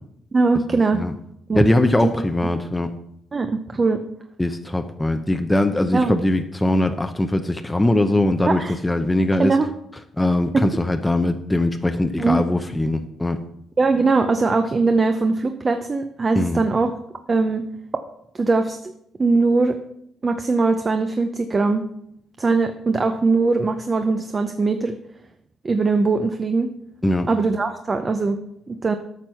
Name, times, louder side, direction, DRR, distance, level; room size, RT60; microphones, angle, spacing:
voice 1, 0.3-1.0 1.5-1.7 2.0-2.2 3.3-4.1 5.9-6.2 8.5-8.7 9.4-9.7 10.5-10.6 12.2-12.4 13.8-16.9 17.3-17.6 18.3-18.9 19.2-19.8 20.2-21.8 22.4-24.9 25.6-26.7 27.3-28.4 28.7-28.9, right 3 dB, 30° right, 7 dB, 0.7 m, -20 dB
voice 2, 1.5-2.9 4.4-9.5 10.2-13.4 16.3-16.6 27.0-27.3, left 1 dB, 10° left, 6 dB, 0.6 m, -21 dB
8.9 x 6.2 x 5.6 m, 0.76 s
cardioid pair, 90°, 0 cm